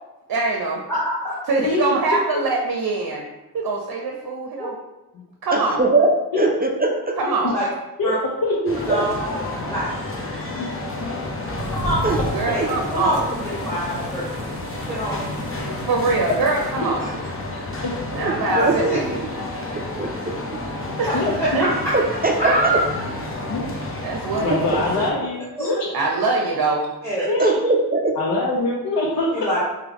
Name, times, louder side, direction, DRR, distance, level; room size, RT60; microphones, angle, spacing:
voice 1, 0.3-0.8 1.5-3.2 3.5-4.7 5.4-5.8 7.2-7.5 12.3-13.2 15.9-17.1 18.1-19.2 21.0-21.7 24.0-24.7 25.0-25.2 25.9-26.9, right 3 dB, 60° right, 1 dB, 0.7 m, -23 dB
voice 2, 0.9-1.3 4.6-4.7 7.5-7.7 8.0-8.2 8.9-9.9 11.7-12.0 12.5-14.5 14.9-15.1 18.5-19.0 21.1-21.5 22.4-22.8 25.6-25.8 27.0-27.3 29.3-29.6, right 1 dB, 5° left, -10 dB, 1.2 m, -25 dB
voice 3, 5.5-7.1 8.6-9.1 12.0-12.2 18.2-18.8 19.7-20.3 21.9-22.8 27.4-28.1, right 2 dB, 25° right, 1 dB, 0.4 m, -21 dB
voice 4, 8.0-8.9 10.5-10.7 11.0-11.1 17.8-18.2 21.1-21.4 23.5-23.6 24.3-25.9 27.3-27.7 28.2-29.6, left 2 dB, 60° left, -3 dB, 0.7 m, -24 dB
sound 1, 8.6-25.1, left 2 dB, 30° left, 0.8 m, -31 dB
sound 2, 11.6-16.7, equal, 80° left, 1.1 m, -33 dB
4.7 x 2.3 x 3.4 m, 1.0 s
cardioid pair, 80°, 40 cm